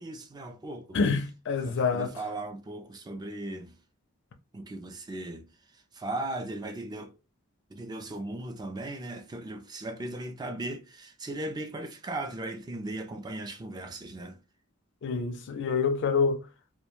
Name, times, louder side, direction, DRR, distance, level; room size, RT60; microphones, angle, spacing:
voice 1, 0.0-1.0 1.6-3.8 4.5-7.1 7.7-14.4, right 2 dB, 20° right, 0.3 m, -37 dB
voice 2, 0.9-2.1 15.0-16.4, left 5 dB, 60° left, 0.4 m, -27 dB
2.2 x 2.1 x 3.0 m
head